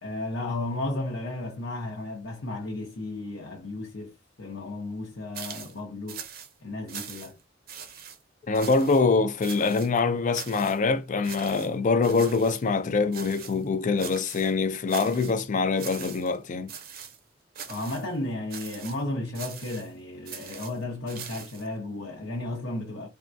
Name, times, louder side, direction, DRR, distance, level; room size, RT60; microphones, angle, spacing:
voice 1, 0.0-6.2 6.6-7.4 17.7-23.1, left 2 dB, 75° left, 0.8 m, -34 dB
sound 1, 5.3-5.8 6.1-6.5 6.9-7.4 7.7-8.2 8.5-9.0 9.4-9.9 10.3-10.8 11.2-11.7 12.0-12.6 13.1-13.6 14.0-14.5 14.9-15.4 15.8-16.4 16.7-17.2 17.5-18.1 18.5-19.0 19.3-19.9 20.3-21.7, right 7 dB, 50° right, 0.6 m, -41 dB
voice 2, 8.5-16.7, left 4 dB, 40° left, 0.4 m, -24 dB
3.5 x 2.2 x 2.5 m
head